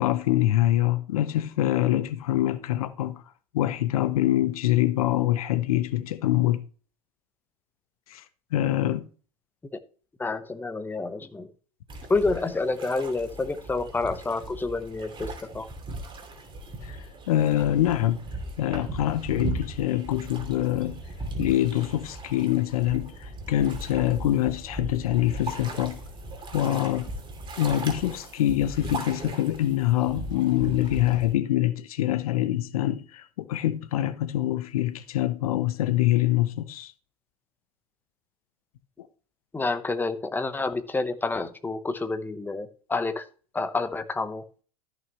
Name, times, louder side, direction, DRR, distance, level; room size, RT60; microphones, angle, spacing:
voice 1, 0.0-3.2 3.5-6.6 8.1-8.2 8.5-9.1 16.8-17.0 17.3-18.2 18.6-21.0 21.4-26.0 26.5-27.1 27.6-36.9, left 13 dB, 70° left, 0.8 m, -25 dB
voice 2, 10.2-11.5 12.1-15.7 39.5-43.3 43.5-44.4, left 3 dB, 10° left, 0.9 m, -29 dB
sound 1, 11.9-31.3, right 2 dB, 25° right, 2.7 m, -38 dB
13.5 x 6.2 x 3.0 m
hypercardioid pair, 85°, 20 cm